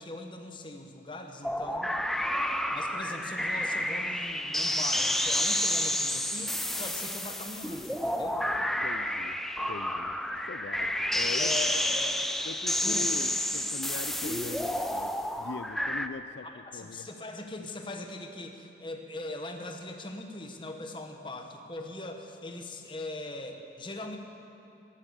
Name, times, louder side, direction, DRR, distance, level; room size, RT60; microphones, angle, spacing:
voice 1, 0.0-1.9 2.7-8.4 11.4-12.2 12.8-13.1 16.4-24.2, left 2 dB, 25° left, 4 dB, 1.2 m, -40 dB
sound 1, 1.4-16.1, left 1 dB, ahead, 0.4 m, -30 dB
voice 2, 8.8-9.4 9.7-10.2 10.5-11.5 12.4-17.1, left 4 dB, 75° left, 10 dB, 0.4 m, -41 dB
14.0 x 11.5 x 8.1 m, 2.9 s
head